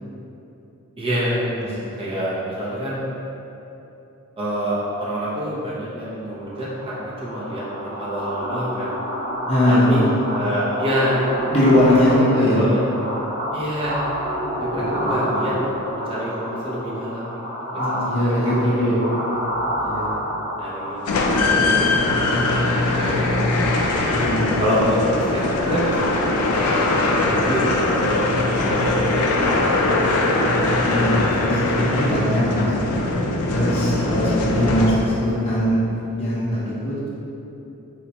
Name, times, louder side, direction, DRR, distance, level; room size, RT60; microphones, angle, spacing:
voice 1, 1.0-1.5 2.0-3.0 4.4-8.9 9.7-10.0 10.3-11.3 12.1-12.8 13.5-14.0 14.6-15.6 15.9-18.3 18.6-18.9 20.6-21.0 21.3-23.6 24.6-26.0 26.5-29.7 32.9-33.0 33.9-34.0, equal, 25° right, -8 dB, 0.5 m, -27 dB
voice 2, 1.6-2.1 9.5-10.2 11.5-12.6 14.7-15.5 17.7-19.1 19.8-20.2 24.1-24.7 30.5-33.0 33.5-35.8 36.2-37.1, left 1 dB, 25° left, -8 dB, 0.7 m, -21 dB
sound 1, 6.4-21.8, equal, 75° right, 1.4 m, -28 dB
sound 2, 21.1-35.3, left 2 dB, 80° left, 0.4 m, -21 dB
4.2 x 2.1 x 2.8 m, 3.0 s
head